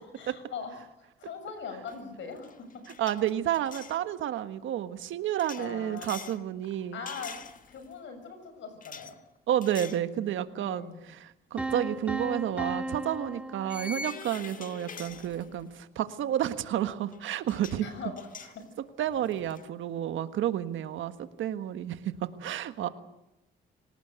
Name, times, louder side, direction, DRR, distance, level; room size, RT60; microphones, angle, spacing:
voice 1, 0.1-0.7 1.0-2.7 5.6-6.4 6.9-7.3 7.7-9.1 10.6-11.0 17.8-18.6 22.8-22.9, left 5 dB, 70° left, 8 dB, 6.8 m, -41 dB
sound 1, 1.9-2.1 2.4-4.0 5.4-6.4 7.1-7.9 8.8-9.1 9.6-10.1 10.5-10.7 12.2-12.3 13.7-15.8 17.1-17.2 17.5-17.8 18.2-19.6, left 4 dB, 40° left, 1.5 m, -44 dB
voice 2, 3.0-7.0 9.5-17.9 19.0-21.1 21.4-22.9, right 11 dB, 80° right, 11 dB, 1.5 m, -31 dB
sound 2, 11.6-14.5, right 2 dB, 5° right, 2.9 m, -35 dB
26.0 x 18.5 x 8.2 m, 0.93 s
cardioid pair, 90°, 20 cm